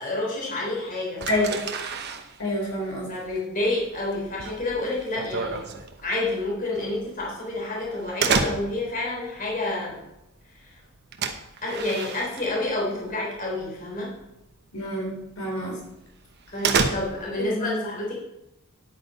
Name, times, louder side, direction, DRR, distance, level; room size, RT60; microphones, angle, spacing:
voice 1, 0.0-1.4 3.1-5.7 6.0-10.0 10.5-10.8 11.6-14.2 16.5-18.2, left 2 dB, 40° left, -4 dB, 3.6 m, -29 dB
sound 1, 1.2-13.1 13.4-13.9 14.2-14.4 14.8-14.9 15.3-15.4 15.8-17.5, right 4 dB, 50° right, 1.0 m, -30 dB
voice 2, 2.4-3.1 14.7-15.8 17.5-17.8, left 1 dB, 75° left, -2 dB, 3.5 m, -27 dB
10.5 x 8.6 x 4.2 m, 0.91 s
head